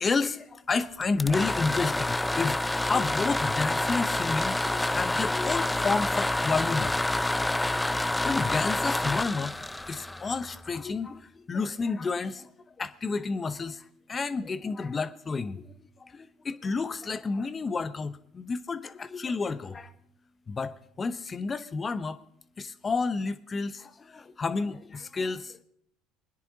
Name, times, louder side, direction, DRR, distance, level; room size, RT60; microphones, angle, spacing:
voice 1, 0.0-6.9 7.9-9.6 9.9-12.5 12.8-19.9 20.5-22.2 22.6-25.6, left 4 dB, 30° left, 13 dB, 0.8 m, -31 dB
sound 1, 1.0-10.8, left 2 dB, 10° left, 0.4 m, -28 dB
23.5 x 10.5 x 2.9 m, 0.69 s
hypercardioid pair, 75°, 0 cm